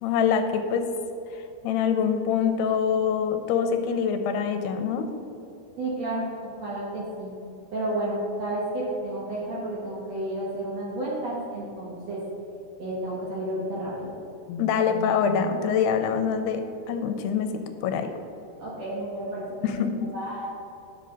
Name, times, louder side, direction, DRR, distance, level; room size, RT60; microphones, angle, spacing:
voice 1, 0.0-0.9 1.3-5.1 14.5-16.6 16.9-17.5 17.8-18.1 19.6-20.1, left 7 dB, 80° left, 7 dB, 2.6 m, -25 dB
voice 2, 5.8-7.3 7.7-12.2 12.8-14.1 18.6-19.7 20.1-20.5, right 1 dB, 55° right, -5 dB, 2.0 m, -31 dB
10.5 x 6.8 x 5.2 m, 2.8 s
omnidirectional pair, 4.7 m